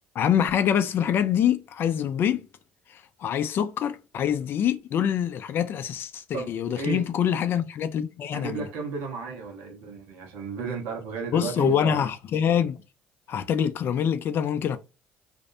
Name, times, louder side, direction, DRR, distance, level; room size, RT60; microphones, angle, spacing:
voice 1, 0.2-2.5 2.9-8.7 11.3-12.8 13.3-14.8, left 9 dB, 55° left, 0.4 m, -25 dB
voice 2, 6.3-7.1 8.3-12.1, right 4 dB, 80° right, 0.9 m, -34 dB
2.5 x 2.1 x 2.6 m
supercardioid pair, 70°, 5 cm